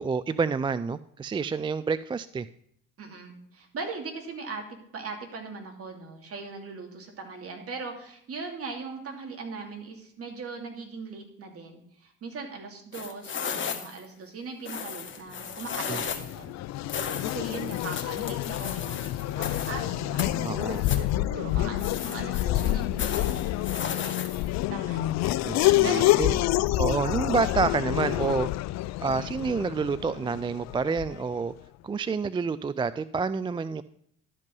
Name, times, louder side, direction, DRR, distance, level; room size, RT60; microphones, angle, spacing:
voice 1, 0.0-2.5 15.9-16.0 20.4-20.8 25.4-26.3 26.8-28.5 29.0-31.5 31.8-33.8, right 5 dB, 15° right, 15 dB, 0.3 m, -28 dB
voice 2, 3.0-16.6 17.0-26.7, right 4 dB, 50° right, 3 dB, 2.8 m, -40 dB
sound 1, 12.9-14.1 14.7-16.4 16.9-19.8 20.2-21.1 21.8-24.6, left 7 dB, 40° left, 1.7 m, -35 dB
Race car auto racing / Accelerating revving vroom, 15.7-31.3, left 16 dB, 60° left, 0.4 m, -28 dB
12.0 x 5.3 x 5.4 m, 0.69 s
supercardioid pair, 80°, 31 cm